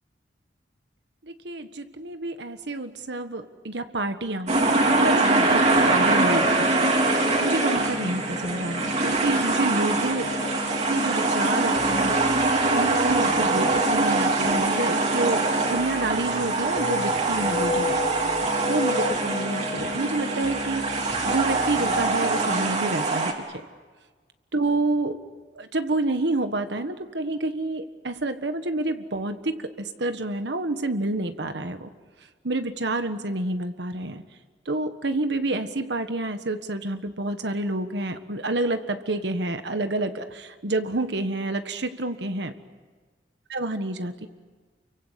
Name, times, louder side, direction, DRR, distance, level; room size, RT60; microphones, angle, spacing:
voice 1, 1.3-6.7 7.1-10.3 10.9-12.2 12.7-18.0 18.7-20.8 21.2-23.3 24.5-25.2 25.5-31.9 32.4-34.2 34.6-42.5 43.5-44.3, right 2 dB, 70° right, 8 dB, 1.5 m, -28 dB
sound 1, 4.5-23.1, left 2 dB, 30° left, 1.7 m, -34 dB
sound 2, 4.5-23.3, right 3 dB, 40° right, 3.9 m, -23 dB
30.0 x 24.0 x 8.3 m, 1.4 s
head